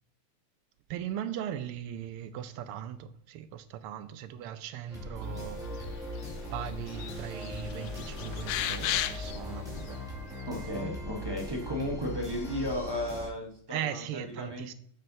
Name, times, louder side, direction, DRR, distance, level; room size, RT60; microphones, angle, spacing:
voice 1, 0.9-5.8 6.5-10.0 13.7-14.7, right 10 dB, 85° right, 1.5 m, -39 dB
sound 1, 4.5-12.1, right 1 dB, 55° right, 4.0 m, -53 dB
sound 2, 4.9-13.3, left 1 dB, ahead, 2.0 m, -39 dB
sound 3, 5.8-6.4 6.7-7.1 7.4-9.4 9.9-10.0, left 12 dB, 85° left, 1.5 m, -34 dB
voice 2, 10.4-14.7, left 1 dB, 20° right, 0.6 m, -34 dB
9.1 x 7.7 x 2.7 m
omnidirectional pair, 2.4 m